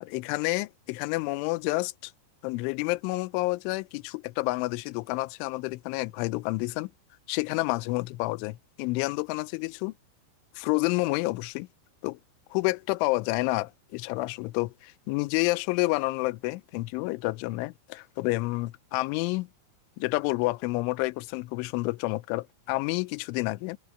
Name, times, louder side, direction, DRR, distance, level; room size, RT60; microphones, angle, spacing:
voice 1, 0.0-2.1 2.4-6.9 7.3-9.9 10.6-11.7 12.0-12.2 12.5-19.5 20.0-23.8, left 22 dB, 85° left, 3.0 m, -29 dB
omnidirectional pair, 5.7 m